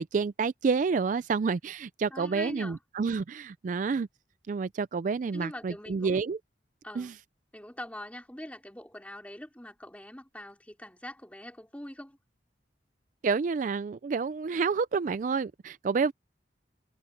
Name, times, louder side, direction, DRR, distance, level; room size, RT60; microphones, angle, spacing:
voice 1, 0.0-4.1 4.5-6.4 7.0-7.1 13.2-16.1, right 5 dB, 45° right, 0.3 m, -29 dB
voice 2, 2.1-2.8 5.3-6.2 6.8-7.1 7.5-12.2, left 1 dB, 10° left, 4.2 m, -43 dB
head